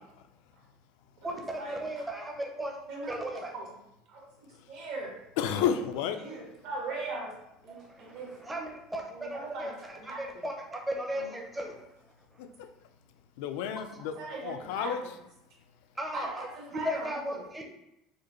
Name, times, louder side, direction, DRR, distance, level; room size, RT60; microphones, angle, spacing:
voice 1, 1.2-2.7 3.1-3.5 6.9-7.0 7.7-11.8 13.9-14.0 15.9-17.6, right 1 dB, 10° right, 0 dB, 0.5 m, -36 dB
voice 2, 4.7-5.2 6.2-7.3 7.6-8.3 9.1-9.7 10.1-10.2 14.1-14.9 16.1-17.0, right 3 dB, 70° right, -2 dB, 1.3 m, -39 dB
voice 3, 5.4-6.2 12.4-12.7 13.4-14.1 14.4-15.0, left 8 dB, 80° left, 8 dB, 0.4 m, -31 dB
4.9 x 2.2 x 3.0 m, 0.85 s
cardioid pair, 140°, 0 cm